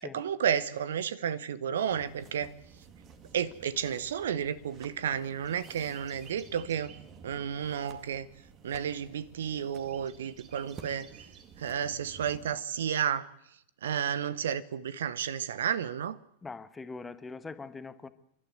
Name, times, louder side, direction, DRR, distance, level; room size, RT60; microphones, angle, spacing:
voice 1, 0.0-2.5 3.3-6.9 7.2-8.3 8.6-11.1 11.6-13.3 13.8-16.2, right 8 dB, 60° right, 0.9 m, -32 dB
sound 1, 1.9-12.6, right 6 dB, 30° right, 2.2 m, -52 dB
voice 2, 16.4-18.1, left 4 dB, 10° left, 1.3 m, -42 dB
29.0 x 12.5 x 9.2 m
figure-of-eight pair, 90°, 0 cm